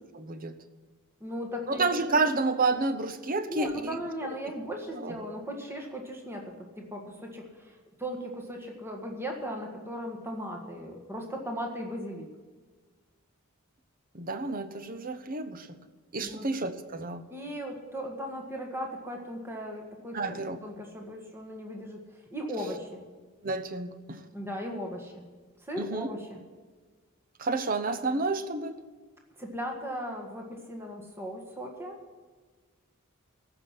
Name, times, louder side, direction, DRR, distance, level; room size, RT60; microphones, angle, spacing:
voice 1, 0.1-0.6 1.7-4.0 5.0-5.1 14.1-15.8 16.1-17.2 20.1-20.6 23.4-24.3 25.8-26.1 27.4-28.7, right 3 dB, 40° right, 10 dB, 0.9 m, -30 dB
voice 2, 1.2-1.9 3.5-12.3 16.2-16.5 17.3-20.4 20.6-23.0 24.3-25.2 25.6-26.4 29.4-32.0, equal, 10° right, 1 dB, 1.7 m, -37 dB
14.5 x 6.0 x 9.7 m, 1.4 s
head